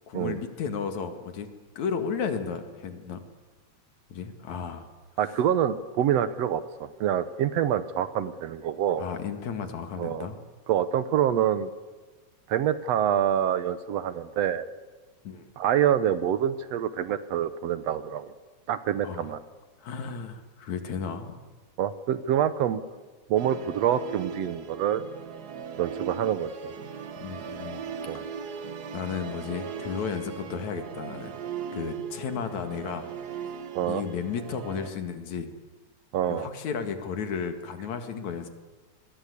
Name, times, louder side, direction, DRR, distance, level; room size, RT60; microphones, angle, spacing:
voice 1, 0.1-1.5 1.8-3.2 4.1-4.9 9.0-10.4 15.2-15.5 19.0-19.3 19.8-21.4 27.2-27.8 28.1-28.4 28.9-31.4 31.7-33.5 33.9-35.5 36.3-38.5, left 6 dB, 75° left, 7 dB, 3.3 m, -34 dB
voice 2, 5.2-9.0 10.0-10.3 10.7-11.7 12.5-14.7 15.6-18.3 18.7-19.4 21.8-22.8 23.3-25.0 25.8-26.7 28.1-28.2 33.8-34.0 36.1-36.5, right 10 dB, 70° right, 13 dB, 1.9 m, -26 dB
Musical instrument, 23.4-34.9, right 7 dB, 45° right, 1.3 m, -38 dB
26.0 x 22.0 x 8.4 m, 1.3 s
omnidirectional pair, 3.3 m